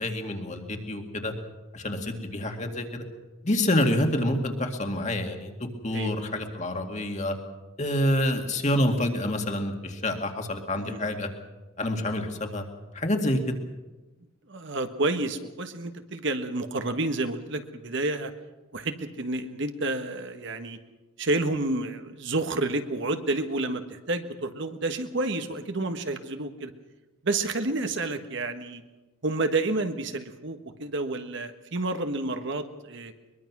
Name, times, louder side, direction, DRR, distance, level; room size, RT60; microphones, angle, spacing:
voice 1, 0.0-1.3 1.7-3.0 3.4-5.5 5.8-7.3 7.8-11.3 11.8-12.6 12.9-13.6, left 1 dB, 35° left, 4 dB, 2.2 m, -27 dB
voice 2, 10.7-11.1 14.5-18.3 18.7-20.8 21.2-26.7 27.2-28.8 29.2-33.1, right 2 dB, 60° right, 7 dB, 1.4 m, -30 dB
22.5 x 22.0 x 6.1 m, 1.2 s
head